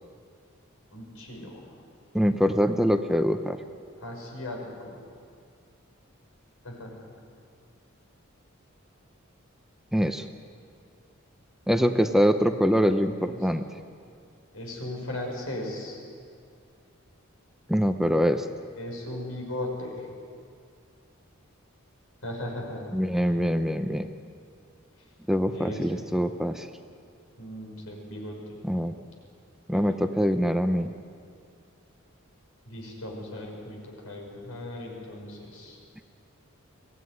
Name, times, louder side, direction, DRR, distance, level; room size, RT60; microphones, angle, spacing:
voice 1, 0.9-1.7 4.0-4.6 4.8-5.0 6.6-6.9 12.4-12.7 13.2-13.4 14.5-16.0 18.8-20.1 22.2-23.4 25.5-26.1 27.4-28.6 29.7-29.9 32.7-35.8, left 1 dB, 80° left, 0 dB, 6.0 m, -37 dB
voice 2, 2.1-3.6 9.9-10.3 11.7-13.7 17.7-18.5 22.9-24.1 25.3-26.7 28.6-28.9 29.7-30.9, equal, ahead, 7 dB, 0.7 m, -24 dB
23.5 x 17.0 x 9.5 m, 2.3 s
head